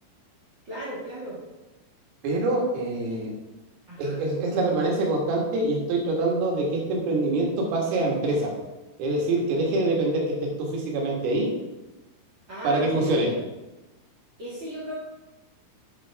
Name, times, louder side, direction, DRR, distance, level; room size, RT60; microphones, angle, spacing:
voice 1, 0.6-1.4 3.0-3.2 3.9-4.2 12.5-13.4 14.4-14.9, right 1 dB, 60° right, -7 dB, 1.2 m, -37 dB
voice 2, 2.2-3.3 4.0-8.5 9.0-11.5 12.6-13.3, right 2 dB, 85° right, -1 dB, 4.4 m, -25 dB
8.6 x 8.6 x 3.6 m, 1.0 s
omnidirectional pair, 5.7 m